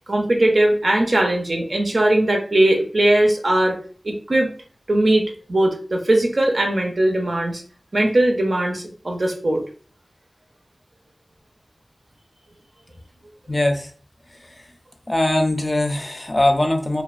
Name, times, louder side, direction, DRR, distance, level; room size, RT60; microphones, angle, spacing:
voice 1, 0.1-3.8 4.0-4.5 4.9-7.6 7.9-9.6, right 1 dB, 70° right, 2 dB, 0.5 m, -19 dB
voice 2, 13.5-13.9 14.4-14.5 15.1-17.0, left 1 dB, 40° left, 4 dB, 0.4 m, -21 dB
2.4 x 2.1 x 2.3 m, 0.41 s
wide cardioid pair, 50°, 0 cm